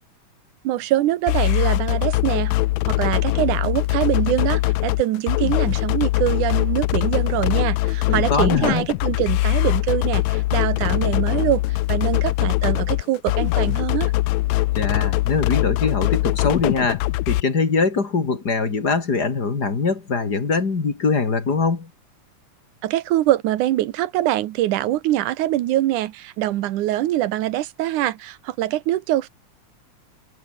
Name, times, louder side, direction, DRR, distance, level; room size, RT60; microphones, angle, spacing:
voice 1, 0.6-2.5 2.9-14.1 22.8-29.3, right 14 dB, 80° right, 2.5 m, -23 dB
sound 1, 1.3-17.4, left 18 dB, 80° left, 1.6 m, -22 dB
voice 2, 8.1-8.8 14.8-21.9, left 4 dB, 30° left, 2.9 m, -22 dB
omnidirectional pair, 3.6 m